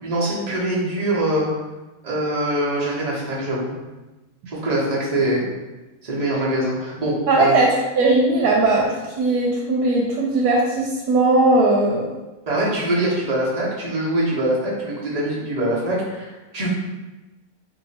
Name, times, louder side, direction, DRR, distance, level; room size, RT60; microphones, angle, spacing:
voice 1, 0.0-1.5 2.0-3.7 4.5-5.4 6.0-7.6 12.5-16.7, right 1 dB, 35° right, -6 dB, 0.8 m, -23 dB
voice 2, 7.3-7.7 8.0-8.9 9.2-12.1, right 2 dB, 85° right, -2 dB, 1.1 m, -18 dB
2.8 x 2.7 x 4.1 m, 1.1 s
omnidirectional pair, 1.6 m